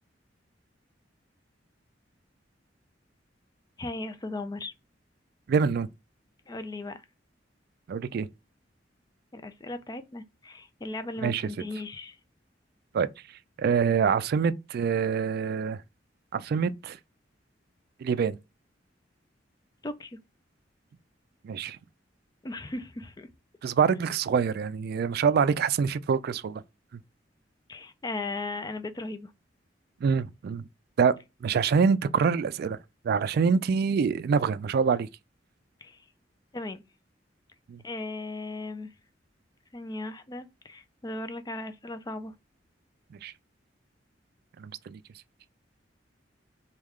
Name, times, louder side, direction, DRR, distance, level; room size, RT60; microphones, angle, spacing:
voice 1, 3.8-4.7 6.5-7.0 9.3-12.2 19.8-20.2 22.4-23.3 27.7-29.3 35.8-36.0 36.5-36.8 37.8-38.9 39.7-42.3, left 2 dB, 20° left, 0.4 m, -37 dB
voice 2, 5.5-5.9 7.9-8.3 11.2-11.5 12.9-13.1 13.6-15.8 16.3-17.0 18.0-18.4 21.4-21.8 23.6-26.6 30.0-30.6 31.0-31.1 31.4-32.8 33.0-35.1 37.7-37.8 43.1-43.3 44.6-45.0, right 6 dB, 55° right, 0.3 m, -25 dB
3.6 x 2.3 x 3.1 m
head